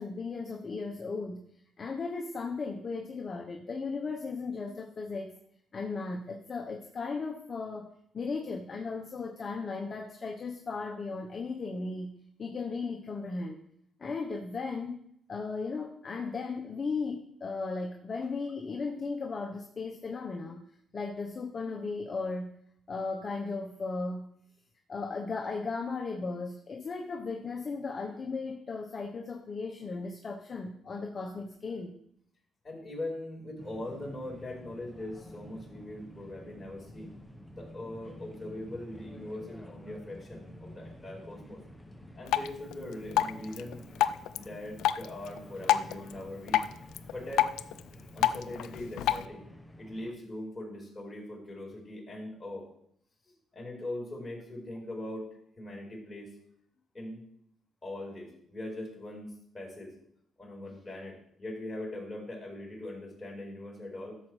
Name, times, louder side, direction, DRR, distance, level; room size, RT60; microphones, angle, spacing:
voice 1, 0.0-1.4 1.8-5.3 5.7-12.1 12.4-13.6 14.0-15.0 15.3-20.6 20.9-22.5 22.9-24.3 24.9-31.9, left 4 dB, 40° left, 2 dB, 1.0 m, -36 dB
voice 2, 32.6-37.1 37.5-41.6 42.1-43.8 44.3-46.7 47.1-47.5 48.1-49.4 49.8-52.7 53.3-55.3 55.6-56.3 56.9-57.2 57.8-59.9 60.4-64.2, left 1 dB, 25° left, -1 dB, 4.7 m, -41 dB
sound 1, 33.6-50.1, left 1 dB, 5° left, 1.0 m, -50 dB
Drip, 42.3-49.3, left 11 dB, 85° left, 0.4 m, -31 dB
13.0 x 7.3 x 3.3 m, 0.69 s
cardioid pair, 90°, 0 cm